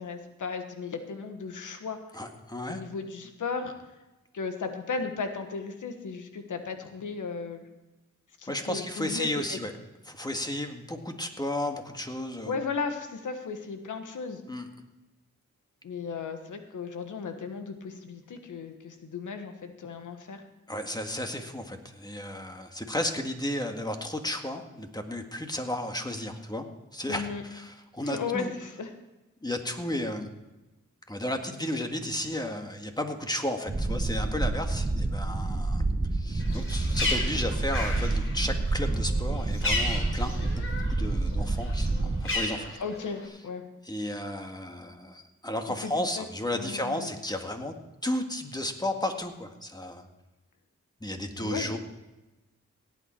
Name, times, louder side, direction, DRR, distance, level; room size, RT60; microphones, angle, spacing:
voice 1, 0.0-2.0 2.7-3.7 4.3-7.7 8.4-9.6 12.5-14.4 15.8-20.4 27.1-27.4 28.0-28.9 42.8-43.6 45.8-46.3 46.5-47.1 51.4-51.8, left 5 dB, 90° left, 7 dB, 1.4 m, -35 dB
voice 2, 2.1-2.8 8.5-9.7 10.1-12.6 14.5-14.7 20.7-26.7 26.9-28.5 29.4-30.3 31.1-35.8 36.1-42.8 43.8-47.7 48.0-50.1 51.0-51.8, left 1 dB, 15° left, 5 dB, 1.8 m, -33 dB
sound 1, 33.7-42.3, right 2 dB, 20° right, 1.1 m, -28 dB
Bird, 36.4-41.0 41.3-43.2, left 2 dB, 45° left, 3.4 m, -33 dB
17.5 x 9.1 x 4.5 m, 1.0 s
cardioid pair, 55°, 30 cm